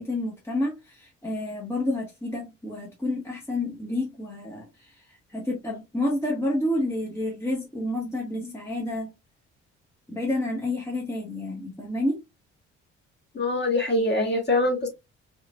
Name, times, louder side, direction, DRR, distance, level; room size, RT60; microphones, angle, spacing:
voice 1, 0.0-9.1 10.1-12.2, left 1 dB, 5° left, 1.1 m, -29 dB
voice 2, 13.3-14.9, left 2 dB, 30° left, 1.8 m, -23 dB
4.7 x 2.5 x 2.2 m
figure-of-eight pair, 45°, 35 cm